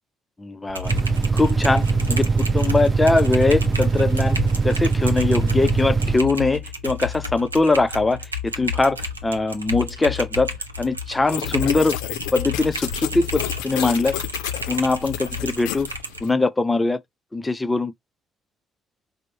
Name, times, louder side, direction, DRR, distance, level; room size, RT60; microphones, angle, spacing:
voice 1, 0.4-0.9 1.3-12.0 12.3-14.2 14.7-15.9 16.2-17.0 17.3-18.0, left 3 dB, 20° left, 0.5 m, -22 dB
Typing, 0.7-16.2, left 3 dB, 85° right, 0.6 m, -32 dB
sound 1, 0.8-6.2, right 4 dB, 35° right, 0.5 m, -21 dB
sound 2, 11.3-16.3, left 11 dB, 65° left, 0.6 m, -31 dB
5.1 x 2.1 x 4.2 m
figure-of-eight pair, 45°, 0 cm